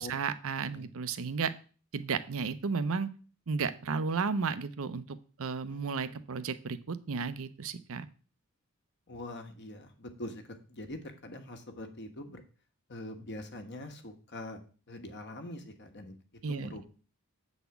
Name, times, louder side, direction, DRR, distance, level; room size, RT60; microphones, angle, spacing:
voice 1, 0.0-1.5 1.9-3.1 3.5-8.1 16.4-16.9, right 5 dB, 70° right, 13 dB, 0.7 m, -33 dB
voice 2, 5.7-6.2 9.1-12.4 12.9-14.6 14.9-16.2 16.5-16.9, left 1 dB, 50° left, 4 dB, 1.3 m, -44 dB
7.9 x 4.1 x 6.9 m, 0.38 s
head